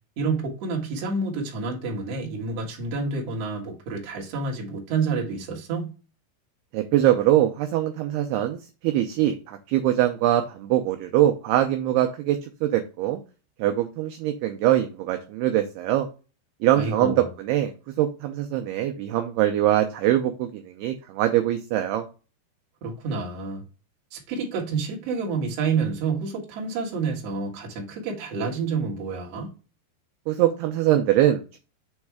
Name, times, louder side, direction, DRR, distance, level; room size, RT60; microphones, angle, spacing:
voice 1, 0.2-5.9 16.7-17.3 22.8-23.6 24.1-29.5, right 4 dB, 50° right, 2.0 m, -29 dB
voice 2, 6.7-8.6 8.8-13.2 13.6-16.1 16.6-17.7 18.0-22.1 30.3-31.6, right 12 dB, 80° right, 2.4 m, -23 dB
7.2 x 3.2 x 4.6 m
omnidirectional pair, 5.0 m